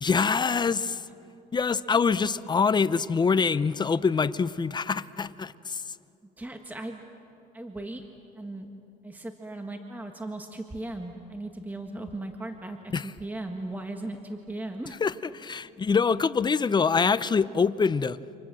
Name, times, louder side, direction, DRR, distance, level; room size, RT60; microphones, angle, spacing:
voice 1, 0.0-1.0 1.5-5.8 12.9-13.1 15.0-18.2, left 5 dB, 25° left, 16 dB, 0.7 m, -25 dB
voice 2, 6.4-7.0 7.5-8.0 8.4-8.7 9.0-15.0, right 2 dB, 10° right, 4 dB, 1.6 m, -37 dB
29.0 x 26.5 x 7.7 m, 2.8 s
cardioid pair, 110°, 17 cm